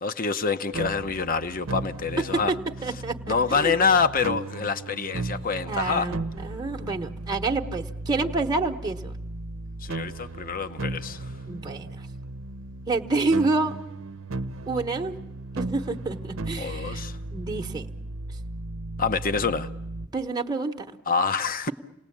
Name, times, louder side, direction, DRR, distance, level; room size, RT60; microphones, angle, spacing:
voice 1, 0.0-2.5 3.3-6.1 9.8-11.3 16.6-17.2 19.0-19.7 21.1-21.7, left 5 dB, 45° left, 0.8 m, -26 dB
sound 1, 0.7-20.1, right 2 dB, 75° right, 0.8 m, -36 dB
voice 2, 2.8-3.8 5.7-9.1 11.5-12.0 12.9-13.8 14.7-15.1 15.6-17.0 17.3-17.9 20.1-21.0, right 3 dB, 20° right, 1.1 m, -28 dB
28.0 x 19.0 x 8.6 m
head